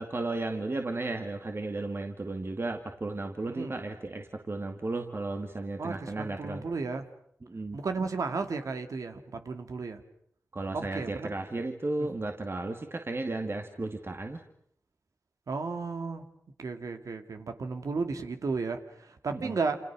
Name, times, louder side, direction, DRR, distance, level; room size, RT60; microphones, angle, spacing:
voice 1, 0.0-6.7 7.5-7.8 10.5-14.4 19.3-19.6, right 2 dB, 45° right, 4 dB, 2.3 m, -34 dB
voice 2, 5.8-7.0 7.7-10.0 10.7-11.3 12.0-12.1 15.5-16.3 16.6-19.8, right 4 dB, 75° right, 7 dB, 2.4 m, -34 dB
28.5 x 27.5 x 6.2 m, 0.67 s
cardioid pair, 45°, 6 cm